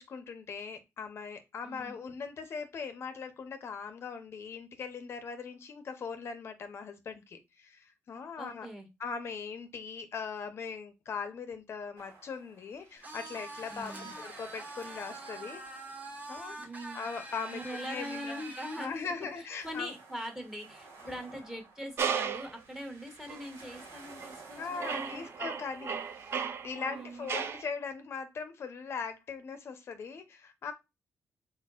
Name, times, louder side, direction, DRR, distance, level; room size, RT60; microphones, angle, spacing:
voice 1, 0.0-8.7 9.0-15.6 16.3-16.6 16.9-18.4 18.8-19.9 21.0-21.4 24.6-26.3 26.6-30.7, left 5 dB, 55° left, 9 dB, 0.6 m, -40 dB
voice 2, 1.6-2.0 8.4-8.9 13.7-14.1 16.5-17.0 17.5-19.0 19.6-25.3 26.8-27.3, equal, 10° right, 5 dB, 1.2 m, -42 dB
sound 1, 12.0-26.5, right 3 dB, 85° right, 2.6 m, -55 dB
sound 2, 13.0-18.9, right 2 dB, 30° right, 1.2 m, -44 dB
sound 3, 22.0-22.6 23.3-23.4 24.1-24.5 24.8-27.7, right 6 dB, 55° right, 0.5 m, -35 dB
4.2 x 3.9 x 2.3 m, 0.23 s
cardioid pair, 110°, 5 cm